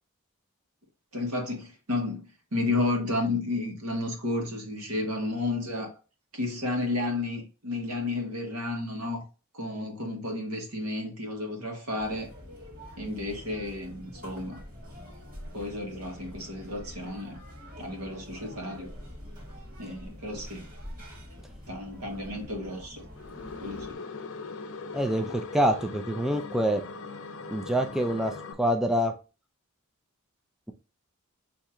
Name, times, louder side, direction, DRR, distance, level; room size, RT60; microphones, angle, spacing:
voice 1, 1.1-6.0 6.3-9.2 9.5-12.3 13.0-14.6 15.5-17.4 17.8-18.9 19.8-20.6 21.7-23.1 23.6-24.0, left 2 dB, 85° right, 1.4 m, -32 dB
sound 1, 12.0-23.9, left 1 dB, 40° right, 1.5 m, -45 dB
sound 2, 23.2-28.5, left 4 dB, 60° left, 0.6 m, -40 dB
voice 2, 24.9-26.8 27.5-28.3 28.6-29.1, equal, ahead, 0.3 m, -26 dB
4.4 x 2.8 x 3.6 m
head